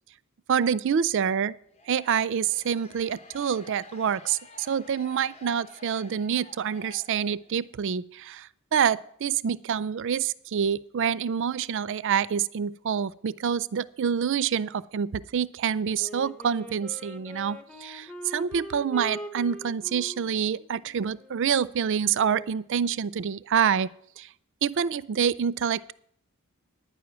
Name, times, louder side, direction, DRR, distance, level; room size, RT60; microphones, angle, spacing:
voice 1, 0.5-1.6 1.9-23.9 24.2-24.3 24.6-25.9, right 7 dB, 55° right, 20 dB, 0.4 m, -27 dB
sound 1, 1.7-7.6, left 3 dB, 30° left, 0.9 m, -51 dB
Wind instrument woodwind instrument, 15.9-22.6, equal, 5° left, 0.9 m, -43 dB
10.0 x 9.5 x 6.1 m, 0.67 s
head